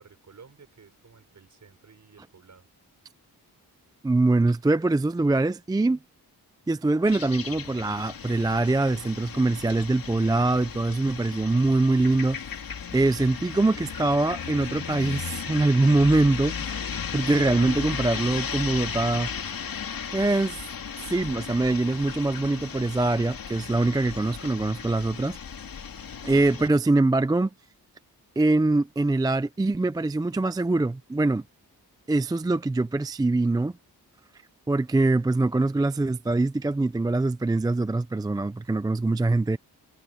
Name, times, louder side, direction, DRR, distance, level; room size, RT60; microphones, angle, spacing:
voice 1, 0.0-2.7, right 5 dB, 45° right, 5.4 m, -53 dB
voice 2, 4.0-6.0 6.7-12.6 12.9-16.8 17.1-19.3 20.1-20.6 21.1-25.4 26.2-27.5 28.4-31.4 32.1-33.7 34.7-39.6, right 2 dB, 10° right, 0.3 m, -23 dB
sound 1, 7.1-26.7, left 7 dB, 60° left, 2.5 m, -36 dB
wide cardioid pair, 170°, 39 cm